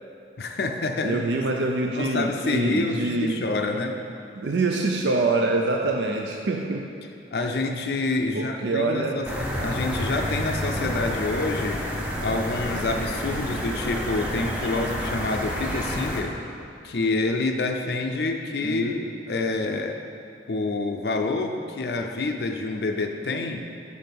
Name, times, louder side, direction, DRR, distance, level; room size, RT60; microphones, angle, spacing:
voice 1, 0.4-1.4 2.0-4.0 7.3-9.3 9.6-11.8 12.2-16.4 16.8-20.0 20.5-23.7, left 3 dB, 60° left, 4 dB, 0.5 m, -27 dB
voice 2, 1.0-3.5 4.4-6.9 8.3-9.3 18.6-19.0, right 2 dB, 70° right, 2 dB, 0.5 m, -25 dB
sound 1, 9.2-16.2, equal, 5° right, 0.7 m, -29 dB
6.4 x 5.3 x 5.9 m, 2.6 s
head